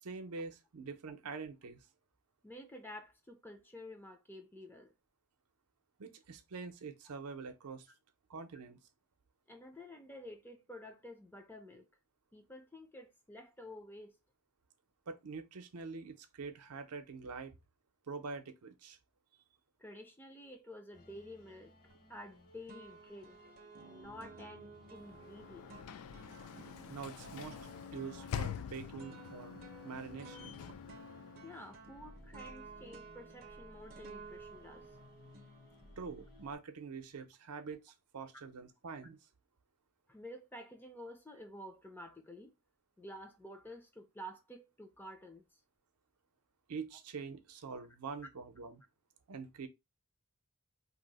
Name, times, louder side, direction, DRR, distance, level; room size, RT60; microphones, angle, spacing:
voice 1, 0.0-1.8 6.0-7.9 8.3-8.8 15.1-17.5 18.1-19.0 26.9-27.6 27.9-30.6 36.0-39.2 46.7-48.8 49.3-49.7, right 5 dB, 85° right, 0.6 m, -45 dB
voice 2, 2.4-4.9 9.5-11.9 12.3-14.2 19.8-21.7 22.1-23.5 23.8-25.8 28.2-28.3 28.9-29.0 31.4-34.9 40.1-42.5 43.0-45.5, left 1 dB, 10° left, 0.4 m, -51 dB
sound 1, 20.9-36.6, left 1 dB, 40° left, 0.8 m, -60 dB
sound 2, 21.9-22.4 22.7-36.1, right 4 dB, 40° right, 0.5 m, -55 dB
Sliding door / Slam, 24.9-31.9, left 8 dB, 75° left, 0.3 m, -46 dB
2.8 x 2.0 x 3.9 m
head